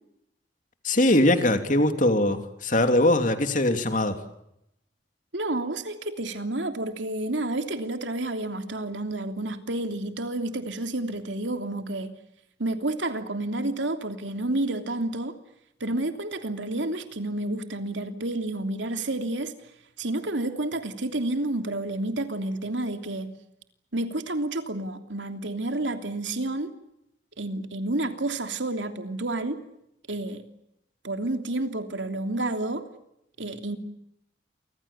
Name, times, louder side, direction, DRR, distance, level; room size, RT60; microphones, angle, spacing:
voice 1, 0.8-4.2, left 1 dB, 45° left, 3.1 m, -21 dB
voice 2, 5.3-12.1 12.6-15.3 15.8-19.5 20.0-23.3 23.9-26.7 27.4-29.6 30.1-30.4 31.0-32.9 33.4-33.8, right 2 dB, 90° right, 3.1 m, -30 dB
30.0 x 25.0 x 7.2 m
head